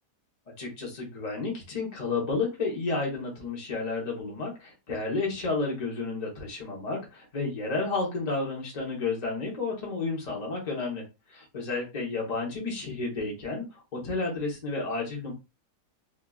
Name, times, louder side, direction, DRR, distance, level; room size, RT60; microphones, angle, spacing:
voice 1, 0.6-11.0 11.5-13.6 13.9-15.3, left 3 dB, 25° left, -2 dB, 1.1 m, -31 dB
3.5 x 2.8 x 2.4 m, 0.26 s
omnidirectional pair, 1.9 m